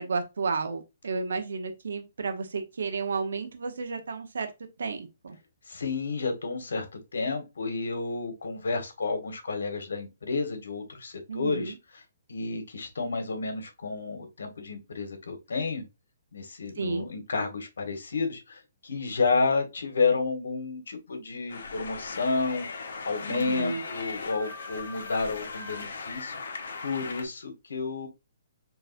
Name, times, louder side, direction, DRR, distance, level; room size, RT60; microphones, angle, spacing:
voice 1, 0.0-4.5 4.8-5.4 11.3-11.7 16.8-17.1 23.3-23.8, right 4 dB, 75° right, 0.9 m, -32 dB
voice 2, 5.7-6.9 7.1-12.0 12.3-15.8 16.3-22.7 23.0-28.1, left 4 dB, 85° left, 1.4 m, -31 dB
sound 1, 21.5-27.3, left 4 dB, 70° left, 1.1 m, -38 dB
4.7 x 3.2 x 2.5 m
hypercardioid pair, 160°, 0 cm